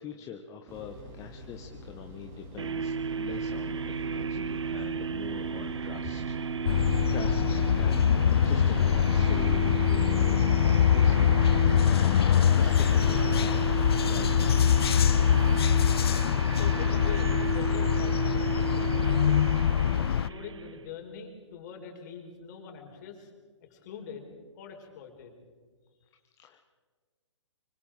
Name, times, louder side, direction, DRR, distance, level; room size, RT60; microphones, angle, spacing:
voice 1, 0.0-10.4 10.7-14.6 26.1-26.6, left 7 dB, 20° left, 4 dB, 1.3 m, -44 dB
sound 1, 0.7-6.9, equal, 25° right, 5.2 m, -45 dB
sound 2, 2.6-20.9, right 6 dB, 65° right, 1.1 m, -34 dB
sound 3, 6.7-20.3, left 9 dB, 55° left, 0.5 m, -23 dB
voice 2, 16.4-19.6 20.1-23.3 23.7-24.3 24.6-25.4, left 7 dB, 35° left, 3 dB, 5.1 m, -43 dB
25.0 x 25.0 x 5.1 m, 1.5 s
figure-of-eight pair, 130°, 15 cm